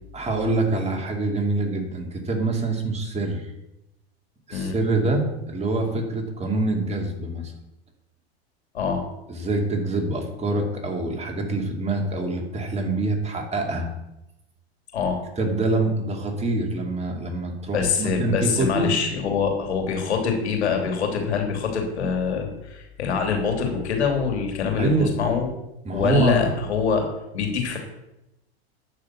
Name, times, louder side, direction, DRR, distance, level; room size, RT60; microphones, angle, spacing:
voice 1, 0.1-3.5 4.5-7.5 9.3-13.9 15.4-18.9 24.8-25.1 25.8-26.4, right 2 dB, 20° right, 2 dB, 2.5 m, -25 dB
voice 2, 17.7-25.5 25.9-27.0 27.3-27.8, left 6 dB, 85° left, 3 dB, 3.1 m, -24 dB
9.9 x 6.7 x 7.5 m, 0.91 s
hypercardioid pair, 115°, 32 cm